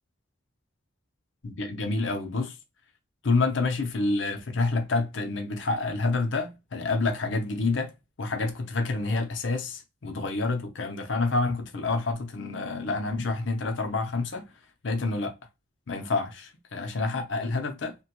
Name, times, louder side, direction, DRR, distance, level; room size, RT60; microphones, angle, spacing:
voice 1, 1.4-2.6 3.2-14.5 14.8-15.3 15.9-18.0, left 3 dB, 70° left, 0.7 m, -28 dB
2.9 x 2.2 x 2.9 m
head